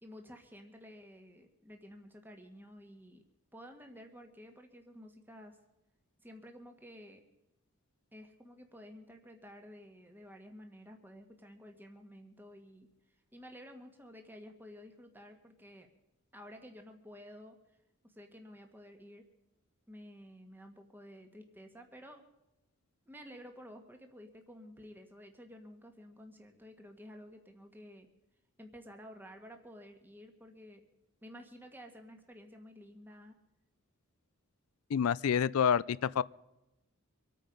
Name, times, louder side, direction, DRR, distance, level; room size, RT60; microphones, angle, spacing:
voice 1, 0.0-3.2 3.5-5.6 6.2-7.2 8.1-12.9 13.3-15.9 16.3-17.6 18.0-19.3 19.9-22.3 23.1-28.1 28.6-30.8 31.2-33.3, equal, 10° right, 1.5 m, -52 dB
voice 2, 34.9-36.2, left 7 dB, 80° left, 0.4 m, -28 dB
25.0 x 9.2 x 5.3 m
head